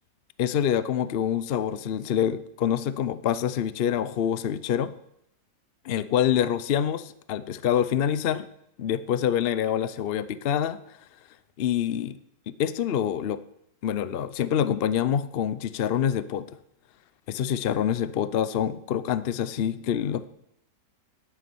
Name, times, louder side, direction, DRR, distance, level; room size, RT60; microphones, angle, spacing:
voice 1, 0.4-4.9 5.8-8.5 8.8-11.0 11.6-12.2 12.5-13.4 13.8-16.5 17.3-20.2, left 9 dB, 65° left, 14 dB, 0.5 m, -26 dB
10.0 x 9.5 x 8.4 m, 0.76 s
omnidirectional pair, 1.9 m